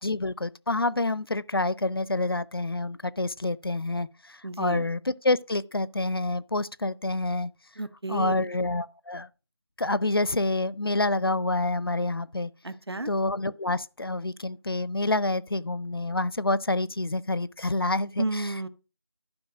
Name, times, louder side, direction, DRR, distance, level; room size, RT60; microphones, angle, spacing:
voice 1, 0.0-7.5 8.1-9.3 9.8-12.5 13.1-18.5, left 2 dB, 60° left, 0.5 m, -27 dB
voice 2, 4.4-4.9 7.8-8.5 12.6-13.1 18.2-18.7, right 2 dB, 65° right, 1.2 m, -32 dB
11.5 x 5.2 x 6.1 m
figure-of-eight pair, 175°, 14 cm